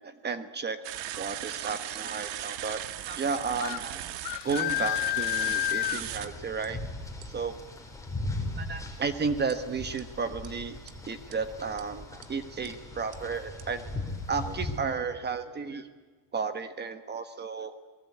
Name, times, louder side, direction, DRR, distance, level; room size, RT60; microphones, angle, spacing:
voice 1, 0.2-0.8 1.2-2.8 3.1-4.2 4.4-6.8 7.3-7.6 8.6-10.8 11.0-15.9 16.3-17.8, right 5 dB, 20° right, 10 dB, 1.2 m, -33 dB
sound 1, 0.8-6.3 6.6-6.7 7.2-7.4 9.5-9.6 10.0-10.1 10.4-10.5 10.9-11.0 11.3-11.4 11.8-11.9 12.2-12.3 12.7-12.8 13.1-13.2 13.6-13.7, right 12 dB, 80° right, 2.0 m, -38 dB
sound 2, 3.6-3.8 4.2-6.0, left 17 dB, 60° left, 1.1 m, -29 dB
sound 3, 4.4-14.8, left 2 dB, 5° left, 3.9 m, -39 dB
27.5 x 19.5 x 8.5 m, 1.4 s
cardioid pair, 145°, 45 cm